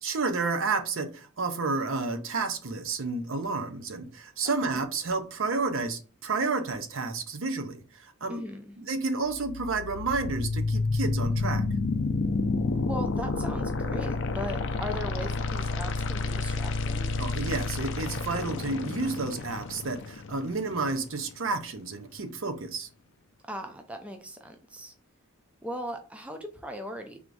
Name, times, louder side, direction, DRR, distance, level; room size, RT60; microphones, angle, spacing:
voice 1, 0.0-8.4 8.8-11.6 17.2-22.9, right 3 dB, 60° right, 0.6 m, -31 dB
voice 2, 4.4-4.9 8.3-8.8 12.9-17.1 23.5-24.9 25.6-27.2, equal, 5° right, 0.4 m, -38 dB
sound 1, 9.3-21.3, left 3 dB, 55° left, 0.4 m, -30 dB
3.5 x 2.6 x 4.6 m
head